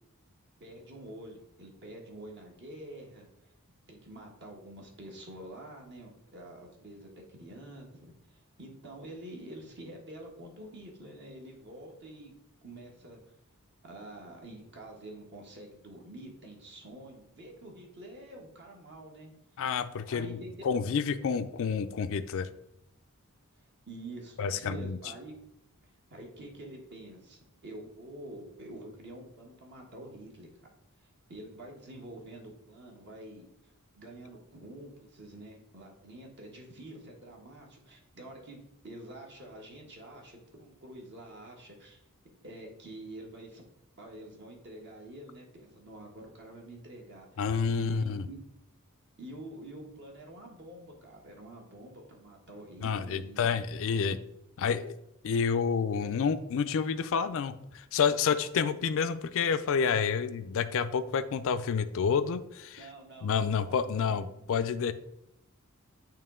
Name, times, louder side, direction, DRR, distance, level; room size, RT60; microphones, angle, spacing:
voice 1, 0.6-3.5 3.9-12.3 12.6-13.2 13.8-19.3 20.1-20.5 23.5-25.3 26.1-30.5 31.0-38.6 38.8-42.0 42.4-43.6 44.0-47.3 47.7-48.4 49.2-53.5 62.8-64.7, right 1 dB, 50° right, 0 dB, 1.2 m, -47 dB
voice 2, 19.6-22.5 24.4-25.0 47.4-48.3 52.8-54.2 54.6-54.9 55.2-62.8 63.2-64.9, left 6 dB, 65° left, 11 dB, 0.4 m, -29 dB
8.7 x 3.0 x 3.7 m, 0.81 s
head